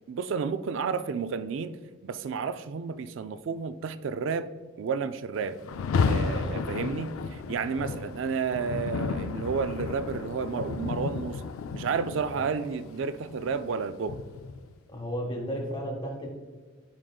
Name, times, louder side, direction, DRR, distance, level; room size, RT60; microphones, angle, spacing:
voice 1, 0.1-4.5 4.8-5.6 6.1-11.4 11.7-14.2, right 5 dB, 65° right, 0.3 m, -31 dB
Rain, 5.6-14.7, left 4 dB, 85° left, 0.4 m, -32 dB
voice 2, 6.4-6.8 7.8-8.0 12.3-12.5 14.9-16.3, equal, 25° left, 0.9 m, -34 dB
11.0 x 4.9 x 2.3 m
head